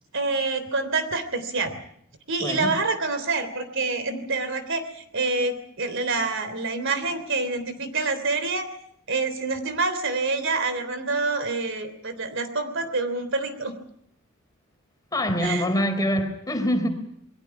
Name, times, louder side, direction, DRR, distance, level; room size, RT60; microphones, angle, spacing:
voice 1, 0.1-1.8 2.3-8.7 9.1-13.7 15.4-15.7, right 3 dB, 60° right, 3.3 m, -27 dB
voice 2, 2.4-2.7 15.1-16.9, equal, 15° left, 4.0 m, -24 dB
28.0 x 22.0 x 6.0 m
head